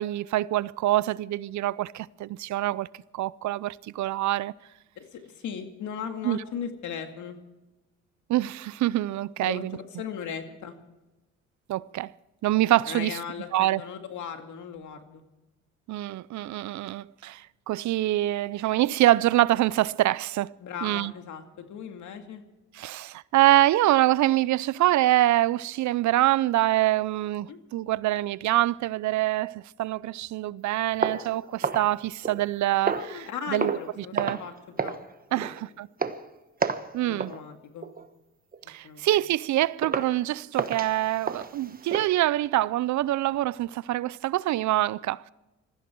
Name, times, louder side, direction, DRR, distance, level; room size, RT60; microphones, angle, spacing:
voice 1, 0.0-2.9 3.1-4.5 6.2-6.4 8.3-9.8 11.7-12.1 12.4-13.2 13.5-13.8 15.9-20.6 20.8-21.1 22.8-33.2 33.5-33.8 34.1-34.4 35.3-35.9 36.9-37.3 38.7-45.3, right 15 dB, 70° right, 0.5 m, -25 dB
voice 2, 5.0-7.4 9.4-10.7 12.8-15.2 20.6-22.4 27.5-27.6 32.9-35.0 35.3-35.5 37.0-37.9 38.8-39.0, left 7 dB, 75° left, 2.3 m, -37 dB
sound 1, 31.0-32.5 32.8-33.2 33.6-33.9 34.2-34.5 34.8-35.0 35.4-35.6 36.0-36.2 36.6-36.9 37.2-37.4 37.8-38.1 38.5-38.6 39.1-39.2 39.8-40.1 40.5-42.1, right 5 dB, 30° right, 1.2 m, -31 dB
20.0 x 15.0 x 4.6 m
cardioid pair, 90°, 30 cm